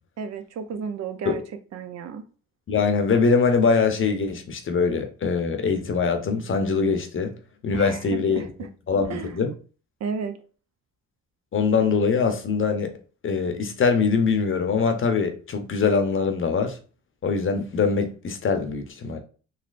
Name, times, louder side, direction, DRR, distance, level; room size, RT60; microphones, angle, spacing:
voice 1, 0.2-1.4 1.7-2.2 7.7-8.4 9.1-9.3 10.0-10.4, right 6 dB, 60° right, 0.6 m, -32 dB
voice 2, 2.7-7.3 7.6-8.5 8.9-9.5 11.5-12.9 13.2-16.8 17.2-19.2, left 5 dB, 40° left, 0.8 m, -23 dB
4.0 x 2.7 x 2.5 m
cardioid pair, 90°, 30 cm